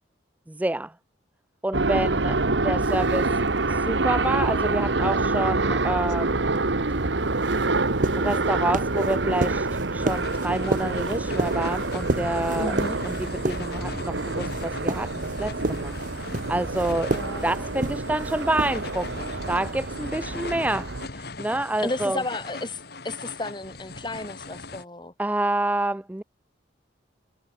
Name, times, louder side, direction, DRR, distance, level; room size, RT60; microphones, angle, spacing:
voice 1, 0.5-0.9 1.6-3.3 3.7-6.6 8.2-12.8 13.0-17.1 17.4-22.2 25.2-26.2, right 1 dB, 10° right, 0.4 m, -28 dB
sound 1, 1.7-21.1, right 3 dB, 70° right, 1.4 m, -27 dB
sound 2, 2.8-19.9, right 2 dB, 45° right, 1.0 m, -34 dB
sound 3, 10.0-24.8, left 3 dB, 55° left, 2.5 m, -40 dB
voice 2, 12.6-13.0 17.1-17.6 21.8-25.1, left 2 dB, 25° left, 2.5 m, -33 dB
head